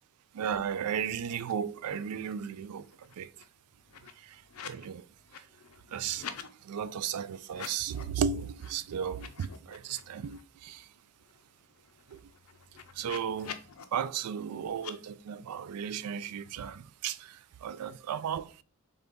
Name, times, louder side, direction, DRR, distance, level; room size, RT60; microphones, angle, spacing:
voice 1, 0.3-3.3 4.2-5.1 5.3-5.5 5.9-6.3 6.6-10.9 12.1-12.2 12.9-13.6 13.9-18.6, right 8 dB, 85° right, 0.3 m, -35 dB
sound 1, 1.4-1.5 1.8-2.5 2.8-4.9 5.2-6.5 7.4-8.2 8.6-8.7 9.1-10.4 10.8-10.9 11.2-13.8 14.7-14.9, left 8 dB, 70° left, 0.5 m, -47 dB
3.9 x 3.4 x 3.6 m
head